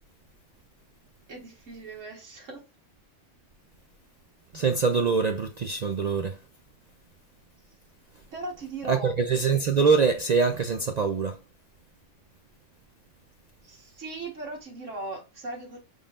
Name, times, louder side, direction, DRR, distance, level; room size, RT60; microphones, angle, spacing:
voice 1, 1.3-2.6 8.3-9.1 13.6-15.8, right 2 dB, 85° right, 1.7 m, -38 dB
voice 2, 4.5-6.4 8.9-11.4, right 5 dB, 60° right, 0.4 m, -24 dB
5.2 x 3.9 x 2.4 m
omnidirectional pair, 1.3 m